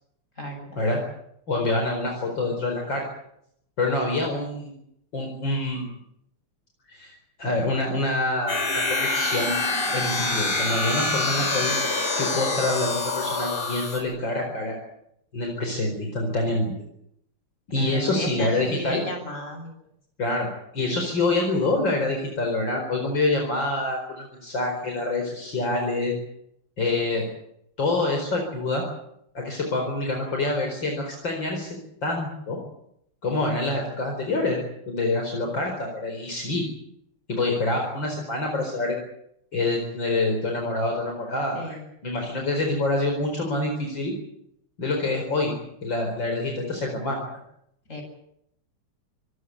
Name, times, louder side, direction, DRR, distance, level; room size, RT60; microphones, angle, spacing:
voice 1, 1.5-3.1 3.8-4.8 5.1-6.0 6.9-9.6 9.9-11.8 12.1-14.8 15.3-16.7 17.7-19.1 20.2-20.5 20.7-26.1 26.8-27.3 27.8-28.8 29.4-31.7 32.0-32.6 33.2-34.6 34.9-36.6 37.3-39.0 39.5-41.8 42.0-44.1 44.8-45.5 45.8-47.3, left 2 dB, 55° left, 2 dB, 5.2 m, -26 dB
sound 1, 8.5-14.0, left 3 dB, 85° left, 5.6 m, -26 dB
voice 2, 17.8-19.7 41.5-41.7 47.9-48.0, left 1 dB, 35° left, 4 dB, 8.0 m, -33 dB
26.0 x 17.5 x 8.4 m, 0.74 s
omnidirectional pair, 2.4 m